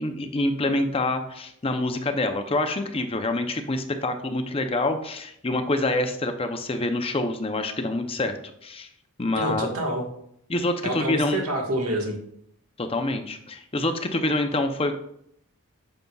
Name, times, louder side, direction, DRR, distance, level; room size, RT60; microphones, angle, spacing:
voice 1, 0.0-8.4 8.6-8.9 9.2-9.7 10.5-11.4 12.8-14.9, left 2 dB, 25° left, 7 dB, 0.6 m, -26 dB
voice 2, 9.3-10.1 10.8-12.2, right 1 dB, 90° right, 1 dB, 1.6 m, -27 dB
9.2 x 6.7 x 2.4 m, 0.73 s
head